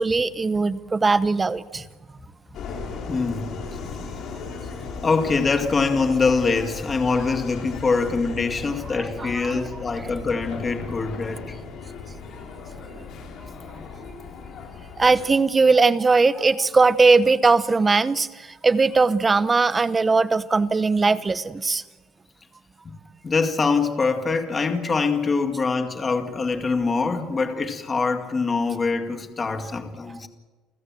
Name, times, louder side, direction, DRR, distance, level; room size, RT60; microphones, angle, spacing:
voice 1, 0.0-1.8 9.2-9.6 15.0-18.3 18.6-21.8, right 4 dB, 20° right, 15 dB, 0.8 m, -19 dB
Subway metro underground, 2.5-15.4, left 5 dB, 50° left, 4.1 m, -36 dB
voice 2, 3.1-3.5 5.0-11.5 13.7-13.8 22.9-23.0 23.2-30.3, left 4 dB, 25° left, 6 dB, 2.1 m, -24 dB
29.5 x 15.0 x 7.6 m, 1.3 s
cardioid pair, 125°, 0 cm